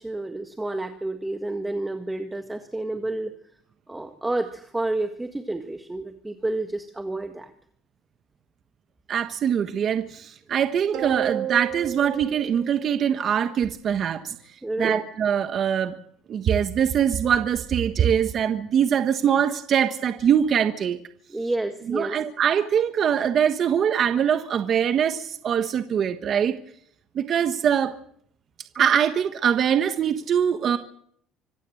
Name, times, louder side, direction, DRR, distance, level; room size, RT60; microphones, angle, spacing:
voice 1, 0.0-3.3 3.9-7.5 14.6-15.0 21.3-22.2, right 2 dB, 10° right, 6 dB, 1.7 m, -30 dB
voice 2, 9.1-14.4 14.8-15.9 16.3-21.0 21.9-26.6 27.1-28.0 28.7-30.8, right 8 dB, 40° right, 8 dB, 1.3 m, -23 dB
sound 1, 10.9-13.5, right 10 dB, 55° right, 3.9 m, -32 dB
25.5 x 15.5 x 7.8 m, 0.66 s
cardioid pair, 140°, 0 cm